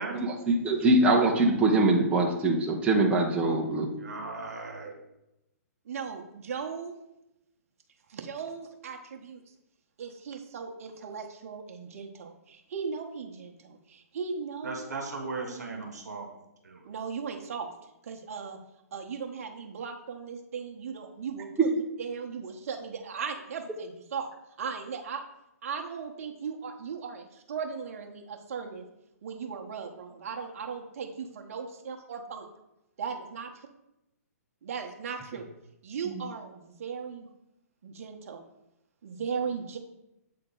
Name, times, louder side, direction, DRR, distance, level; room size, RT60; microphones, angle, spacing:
voice 1, 0.2-3.9, right 2 dB, 10° right, -2 dB, 0.8 m, -23 dB
voice 2, 3.3-4.9 14.6-16.3 16.6-16.9, right 3 dB, 80° right, 3 dB, 1.4 m, -37 dB
voice 3, 5.8-6.9 8.1-9.4 10.0-14.9 16.8-17.7 18.0-18.6 18.9-21.7 22.0-24.3 24.6-25.2 25.6-28.8 29.2-32.5 33.0-33.5 34.6-35.5 35.8-37.3 37.8-38.4 39.0-39.8, right 6 dB, 55° right, 3 dB, 1.0 m, -37 dB
7.8 x 3.8 x 3.8 m, 0.89 s
hypercardioid pair, 135°, 9 cm